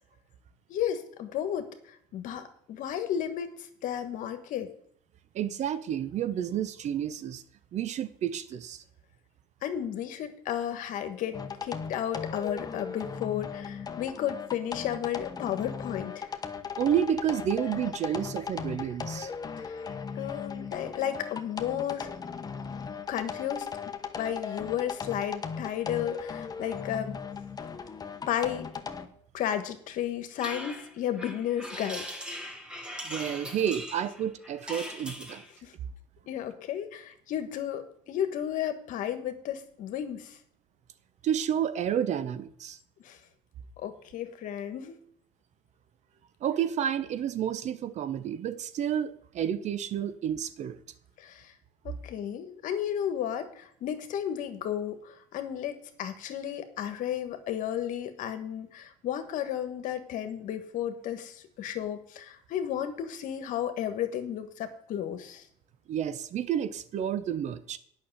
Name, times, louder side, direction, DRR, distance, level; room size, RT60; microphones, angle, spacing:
voice 1, 0.7-3.5 3.8-4.7 9.6-16.3 19.6-19.8 20.1-22.1 23.1-23.7 24.2-27.2 28.3-28.7 29.3-32.0 35.6-35.7 36.3-40.4 43.0-43.2 43.8-45.0 51.2-51.5 51.8-65.4, left 10 dB, 65° left, 9 dB, 1.4 m, -33 dB
voice 2, 5.3-7.4 7.7-8.8 16.8-19.3 33.0-35.4 41.2-42.8 46.4-50.8 65.9-67.8, right 9 dB, 55° right, 13 dB, 0.9 m, -30 dB
sound 1, 11.3-29.1, left 6 dB, 25° left, 1.1 m, -38 dB
sound 2, 30.4-35.5, equal, 5° right, 2.1 m, -40 dB
8.7 x 6.3 x 7.8 m, 0.64 s
supercardioid pair, 85°, 15 cm